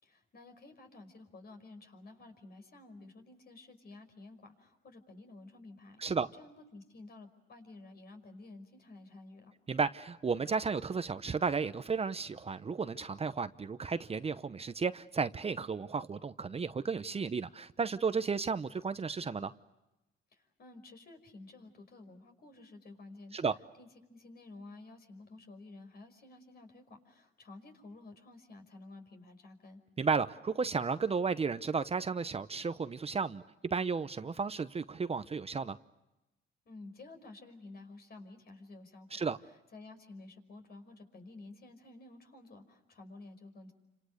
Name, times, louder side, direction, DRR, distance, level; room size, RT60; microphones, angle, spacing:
voice 1, 0.0-9.6 20.3-23.4 23.8-29.8 36.7-39.3 39.7-43.7, left 2 dB, 50° left, 6 dB, 5.4 m, -52 dB
voice 2, 9.7-19.5 23.3-23.5 30.0-33.4 33.7-35.8 39.1-39.4, right 5 dB, 30° right, 12 dB, 0.8 m, -33 dB
29.5 x 26.5 x 6.5 m, 0.97 s
cardioid pair, 90°, 20 cm